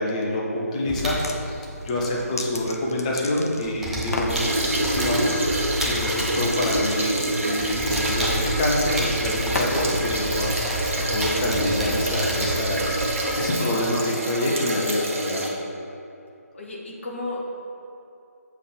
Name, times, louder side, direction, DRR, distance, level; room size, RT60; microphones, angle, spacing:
voice 1, 0.0-10.5 11.1-12.9 13.4-15.4, left 1 dB, 25° left, -2 dB, 1.1 m, -26 dB
sound 1, 0.9-3.1 3.4-13.5, equal, 5° right, 0.6 m, -30 dB
sound 2, 1.0-1.4 1.8-3.7 4.0-4.4 5.7-5.9 6.2-9.9, left 2 dB, 65° left, 0.8 m, -33 dB
voice 2, 2.1-2.4 16.5-17.4, left 2 dB, 50° left, -1 dB, 1.4 m, -34 dB
sound 3, 4.3-15.5, right 1 dB, 55° right, 1.3 m, -27 dB
7.3 x 5.2 x 4.4 m, 2.8 s
figure-of-eight pair, 150°, 9 cm